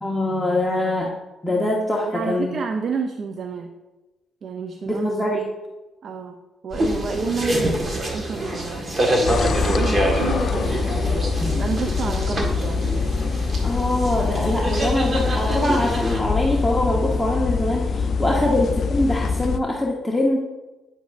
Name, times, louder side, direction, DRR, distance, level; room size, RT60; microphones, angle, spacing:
voice 1, 0.0-1.2 1.4-2.5 4.9-5.4 13.6-20.4, left 1 dB, 5° left, -3 dB, 1.0 m, -23 dB
voice 2, 2.0-3.7 4.4-5.3 6.0-8.9 9.2-11.3 11.5-12.8 18.2-18.5, right 5 dB, 55° right, 5 dB, 0.6 m, -30 dB
sound 1, 6.7-16.2, right 1 dB, 30° right, 1.5 m, -26 dB
sound 2, 9.3-19.6, left 5 dB, 55° left, 0.4 m, -24 dB
9.3 x 7.2 x 2.5 m, 1.1 s
cardioid pair, 90°, 0 cm